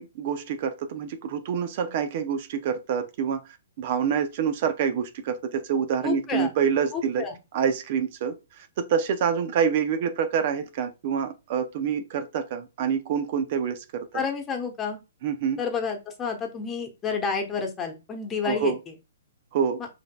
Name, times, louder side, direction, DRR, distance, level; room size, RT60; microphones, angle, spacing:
voice 1, 0.0-3.4 3.8-7.3 7.5-8.3 8.8-14.1 15.2-15.6 18.4-18.8 19.5-19.8, right 7 dB, 50° right, 0.6 m, -26 dB
voice 2, 6.0-6.5 6.9-7.3 14.1-15.0 15.6-18.7, left 5 dB, 20° left, 1.1 m, -29 dB
4.9 x 3.6 x 2.3 m
hypercardioid pair, 130°, 0 cm